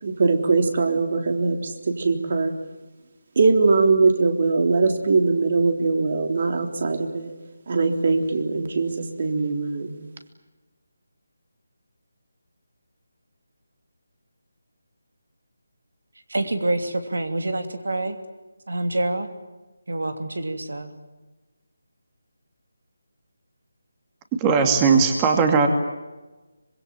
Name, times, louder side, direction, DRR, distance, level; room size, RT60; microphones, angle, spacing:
voice 1, 0.0-2.6 3.4-7.3 7.7-10.0, right 4 dB, 50° right, 6 dB, 3.6 m, -21 dB
voice 2, 16.3-18.2 18.7-19.3 19.9-20.9, right 2 dB, 75° right, 8 dB, 3.0 m, -26 dB
voice 3, 24.4-25.7, right 5 dB, 15° right, 5 dB, 2.6 m, -18 dB
25.5 x 22.5 x 9.1 m, 1.1 s
figure-of-eight pair, 160°, 0 cm